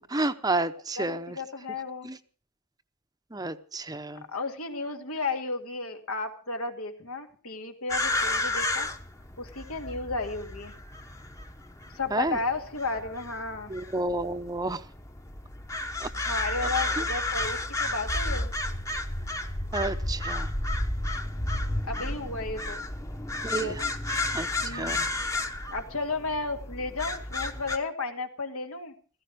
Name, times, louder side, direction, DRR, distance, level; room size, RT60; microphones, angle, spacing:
voice 1, 0.1-1.4 2.0-2.2 3.3-4.2 12.1-12.4 13.7-14.8 16.0-16.1 19.7-20.5 23.4-23.7 24.3-25.2, right 2 dB, 15° right, 10 dB, 0.7 m, -30 dB
voice 2, 1.0-2.1 4.3-8.9 9.4-10.7 11.9-13.7 16.3-18.5 21.8-22.8 23.5-23.8 24.6-25.0 25.7-28.9, left 3 dB, 85° left, 5 dB, 2.3 m, -33 dB
sound 1, 7.9-27.8, left 2 dB, 15° left, 0.9 m, -33 dB
sound 2, 17.2-21.9, equal, 30° left, 1.4 m, -34 dB
16.0 x 15.0 x 5.0 m, 0.38 s
head